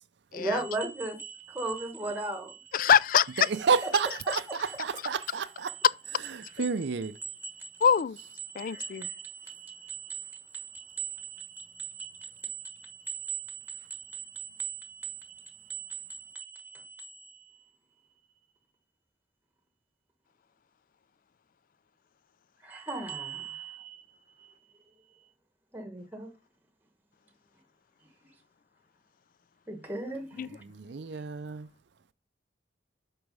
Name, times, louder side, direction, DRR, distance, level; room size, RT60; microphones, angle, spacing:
voice 1, 0.3-2.9 3.5-4.8 7.0-7.7 8.4-17.5 22.6-24.5 25.7-26.3 29.7-30.6, right 4 dB, 10° right, 1.1 m, -38 dB
voice 2, 2.7-3.5 7.8-8.2 8.6-9.1 30.4-30.5, left 7 dB, 45° left, 0.3 m, -24 dB
voice 3, 3.4-5.7 6.3-7.1 30.6-31.7, right 5 dB, 65° right, 0.5 m, -30 dB
7.9 x 4.6 x 5.3 m
head